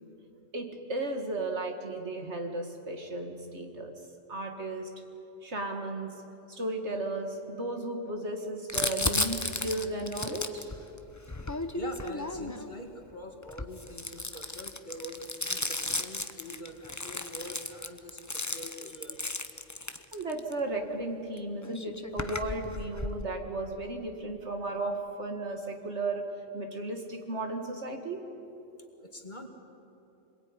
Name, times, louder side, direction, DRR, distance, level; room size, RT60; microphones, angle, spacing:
voice 1, 0.5-4.0 4.3-5.0 5.4-10.7 20.1-28.3, right 2 dB, 60° right, 4 dB, 2.3 m, -35 dB
Crumpling crinkling, 8.7-12.7 13.4-20.5 21.4-21.5 21.6-23.2, left 2 dB, 15° left, 0.9 m, -34 dB
voice 2, 11.3-19.3 29.0-29.5, left 1 dB, 35° left, 4 dB, 2.2 m, -44 dB
26.0 x 21.5 x 9.8 m, 2.9 s
omnidirectional pair, 1.3 m